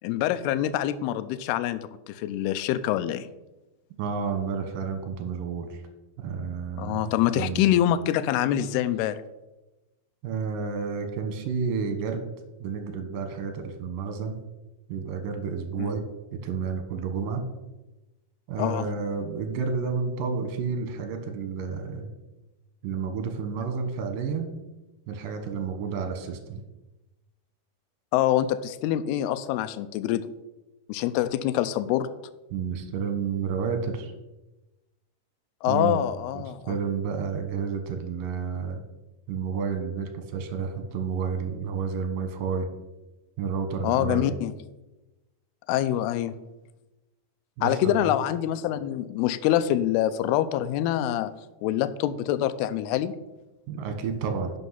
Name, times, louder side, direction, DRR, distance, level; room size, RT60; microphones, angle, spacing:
voice 1, 0.0-3.3 6.8-9.2 15.8-15.9 18.6-18.9 28.1-30.3 30.9-32.1 35.6-36.7 43.8-44.5 45.7-46.3 47.6-51.3 51.6-53.1, left 12 dB, 85° left, 12 dB, 2.6 m, -25 dB
voice 2, 4.0-5.8 6.2-7.7 10.2-12.3 12.6-14.4 14.9-16.0 16.4-17.4 18.5-22.1 22.8-24.5 25.1-26.6 32.5-34.1 35.7-38.8 39.3-42.7 43.4-44.4 47.6-48.2 53.7-54.5, right 5 dB, 70° right, 6 dB, 2.7 m, -30 dB
11.0 x 6.2 x 5.8 m, 1.0 s
omnidirectional pair, 4.6 m